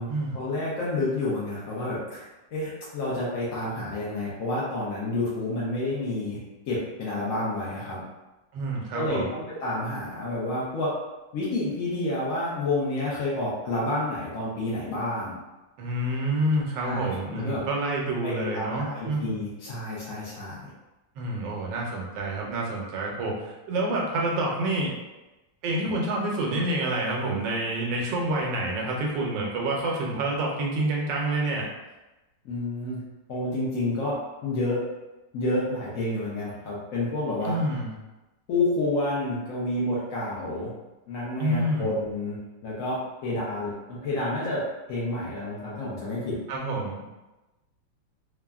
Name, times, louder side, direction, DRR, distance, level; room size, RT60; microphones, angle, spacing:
voice 1, 0.3-2.2 2.5-6.4 6.7-8.0 8.9-10.9 11.3-15.4 16.8-17.6 18.2-20.6 32.4-33.0 33.3-34.8 35.3-37.6 38.5-40.7 41.1-42.4 42.6-44.6 44.9-46.4, left 2 dB, 70° left, -7 dB, 0.8 m, -29 dB
voice 2, 8.5-9.3 15.8-19.3 21.2-24.9 25.6-31.7 37.4-37.9 41.4-41.9 46.5-47.0, right 1 dB, 85° right, -1 dB, 1.3 m, -28 dB
3.5 x 2.0 x 2.3 m, 1.1 s
omnidirectional pair, 1.9 m